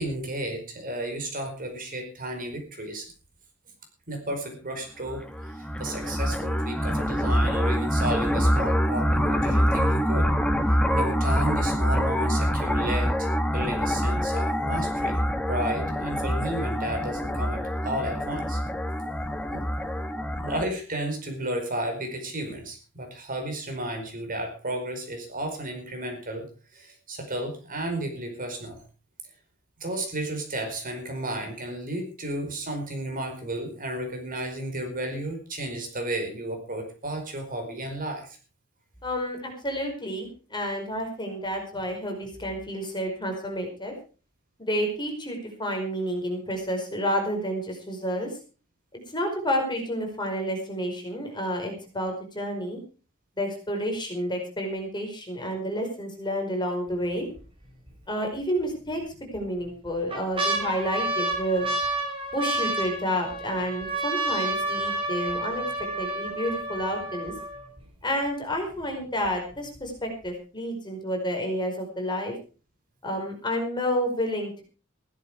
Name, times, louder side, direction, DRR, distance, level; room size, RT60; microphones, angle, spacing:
voice 1, 0.0-3.1 4.1-10.3 10.9-15.2 15.5-18.6 19.5-19.6 20.3-26.4 26.7-28.8 29.8-38.4, right 1 dB, 40° right, 4 dB, 4.9 m, -33 dB
sound 1, 5.1-20.7, equal, 5° left, 1.3 m, -25 dB
voice 2, 39.0-43.9 44.6-48.3 48.9-52.8 53.4-57.3 58.1-61.7 62.3-65.6 66.0-67.3 68.0-72.3 73.0-74.6, equal, 20° left, 2 dB, 4.9 m, -30 dB
sound 2, 56.9-57.4 57.9-58.0 58.9-59.4 59.8-67.8 68.5-68.6 68.8-69.3 69.8-69.9, right 2 dB, 25° right, 5.1 m, -30 dB
16.0 x 12.5 x 4.9 m, 0.37 s
head